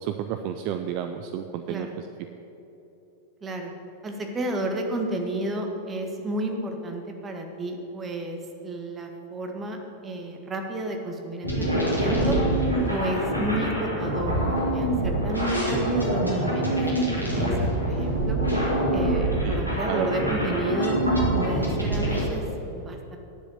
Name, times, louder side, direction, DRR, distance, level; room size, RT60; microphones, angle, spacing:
voice 1, 0.0-2.1 19.4-19.6 19.9-20.1, right 10 dB, 45° right, 7 dB, 0.5 m, -31 dB
voice 2, 3.4-3.7 4.0-12.4 12.9-18.4 18.9-21.0 21.4-23.2, right 1 dB, 20° right, 3 dB, 1.7 m, -32 dB
sound 1, 11.4-22.2, right 1 dB, 90° right, 2.8 m, -25 dB
10.0 x 7.3 x 8.2 m, 3.0 s
figure-of-eight pair, 90°, 0 cm